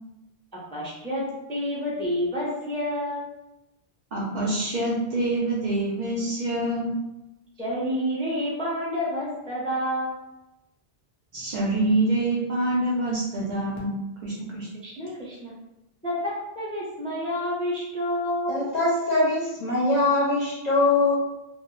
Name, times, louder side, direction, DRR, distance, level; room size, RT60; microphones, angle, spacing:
voice 1, 0.7-1.2 1.5-3.2 7.6-10.2 14.8-15.5 16.0-18.7, equal, 5° left, -7 dB, 0.4 m, -29 dB
voice 2, 4.1-6.9 11.3-13.9 14.2-14.7, right 2 dB, 50° right, -5 dB, 0.7 m, -26 dB
voice 3, 18.5-21.1, left 2 dB, 50° left, -5 dB, 0.6 m, -22 dB
2.3 x 2.0 x 3.0 m, 0.94 s
omnidirectional pair, 1.1 m